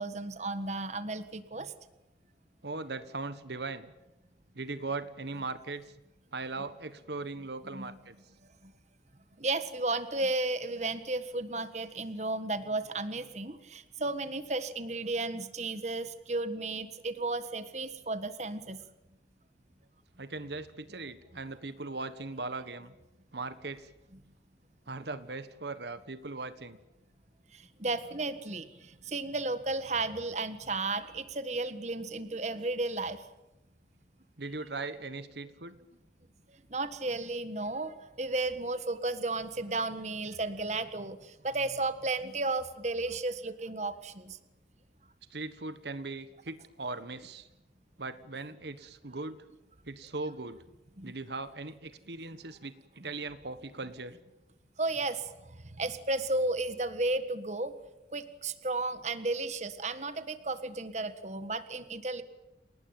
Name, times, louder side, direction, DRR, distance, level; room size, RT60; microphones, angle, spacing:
voice 1, 0.0-1.7 7.7-7.9 9.4-18.8 27.8-33.2 36.7-44.4 51.0-51.1 54.8-55.2 55.8-57.7 58.1-62.2, right 2 dB, 40° right, 11 dB, 1.6 m, -33 dB
voice 2, 2.6-3.9 4.5-5.9 6.3-8.2 20.2-22.9 23.3-23.9 24.9-26.8 34.4-35.7 45.3-47.5 48.0-49.4 49.9-50.6 51.0-54.2, right 3 dB, 70° right, 12 dB, 1.4 m, -39 dB
29.0 x 19.0 x 9.1 m, 0.96 s
head